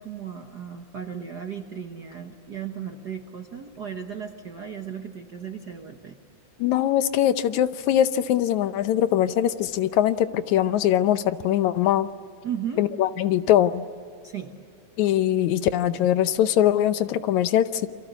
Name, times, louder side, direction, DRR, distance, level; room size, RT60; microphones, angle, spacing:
voice 1, 0.0-6.2 12.4-12.8 14.2-14.5, right 8 dB, 55° right, 4 dB, 1.2 m, -35 dB
voice 2, 6.6-12.1 12.8-13.8 15.0-17.9, left 11 dB, 80° left, 12 dB, 2.1 m, -22 dB
28.5 x 24.0 x 8.2 m, 2.3 s
omnidirectional pair, 3.4 m